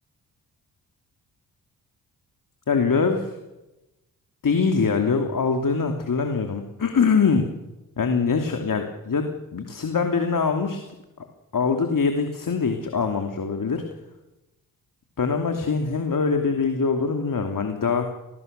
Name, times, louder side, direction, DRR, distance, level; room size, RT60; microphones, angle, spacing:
voice 1, 2.7-3.4 4.4-7.5 8.0-10.8 11.2-11.3 11.5-13.8 15.2-18.1, left 5 dB, 50° left, 5 dB, 2.9 m, -23 dB
24.5 x 19.0 x 6.8 m, 1.0 s
hypercardioid pair, 40°, 43 cm